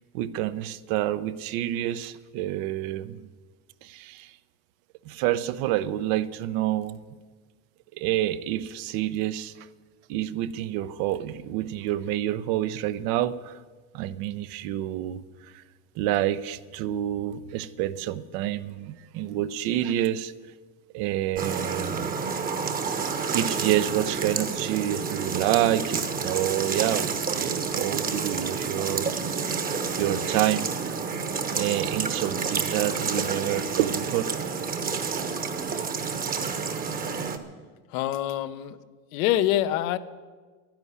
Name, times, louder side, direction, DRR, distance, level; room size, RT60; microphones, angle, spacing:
voice 1, 0.1-3.3 3.8-4.3 5.0-7.0 8.0-9.7 10.1-13.6 13.9-15.2 15.5-15.6 16.0-20.3 20.9-22.2 23.3-29.1 30.0-30.8 31.5-34.3, right 13 dB, 60° right, 14 dB, 0.8 m, -28 dB
sound 1, 21.4-37.4, right 5 dB, 20° right, 1.1 m, -29 dB
voice 2, 37.9-38.8 39.1-40.0, left 13 dB, 80° left, 11 dB, 1.0 m, -25 dB
11.5 x 10.5 x 9.6 m, 1.4 s
supercardioid pair, 140°, 41 cm